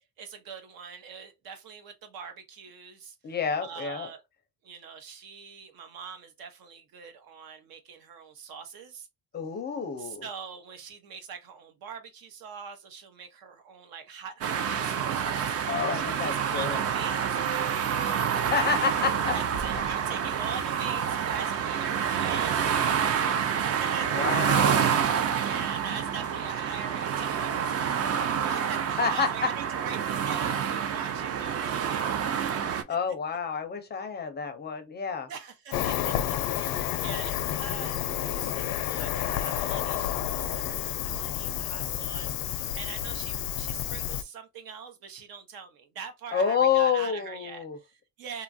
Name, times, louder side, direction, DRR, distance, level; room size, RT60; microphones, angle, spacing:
voice 1, 0.2-3.2 3.6-4.2 4.6-9.1 10.0-18.3 19.3-24.4 25.1-32.5 35.3-48.4, right 6 dB, 75° right, 0.9 m, -43 dB
voice 2, 3.2-4.1 9.3-10.3 15.7-16.8 18.5-19.3 24.1-24.9 29.0-29.3 32.9-35.3 46.3-47.8, left 6 dB, 30° left, 0.4 m, -28 dB
sound 1, 14.4-32.8, right 8 dB, 45° right, 0.4 m, -28 dB
Cricket, 35.7-44.2, left 11 dB, 80° left, 0.5 m, -30 dB
2.9 x 2.3 x 2.5 m
cardioid pair, 165°, 36 cm